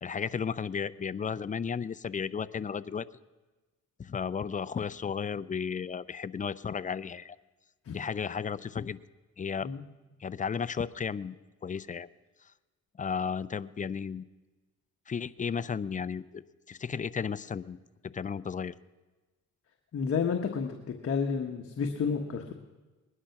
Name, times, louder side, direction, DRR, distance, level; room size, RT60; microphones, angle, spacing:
voice 1, 0.0-3.1 4.0-7.4 7.9-9.0 9.4-9.7 10.2-11.4 11.6-12.1 13.0-14.2 15.1-16.4 16.7-17.8 18.1-18.7, left 6 dB, 25° left, 15 dB, 0.5 m, -34 dB
voice 2, 19.9-20.8 21.0-22.5, left 6 dB, 50° left, 3 dB, 1.3 m, -30 dB
20.0 x 11.0 x 5.9 m, 1.2 s
cardioid pair, 90°, 30 cm